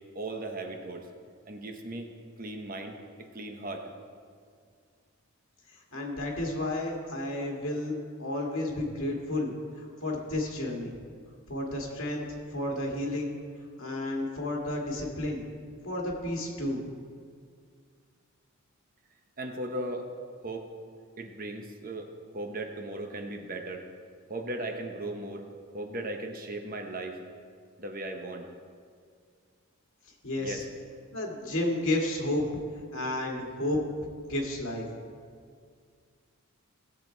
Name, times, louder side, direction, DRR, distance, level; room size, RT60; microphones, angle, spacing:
voice 1, 0.1-1.1 1.4-2.1 2.4-3.9 19.4-20.1 20.4-20.7 21.2-23.8 24.3-25.4 25.7-27.2 27.8-28.4 30.4-30.6, right 2 dB, 40° right, 4 dB, 1.0 m, -37 dB
voice 2, 5.7-9.5 9.8-11.0 11.5-12.2 12.5-13.3 13.8-15.5 15.8-16.8 30.2-30.6 31.1-32.4 32.9-33.8 34.3-34.9, left 1 dB, 65° left, -1 dB, 2.1 m, -31 dB
16.5 x 7.5 x 4.5 m, 2.1 s
head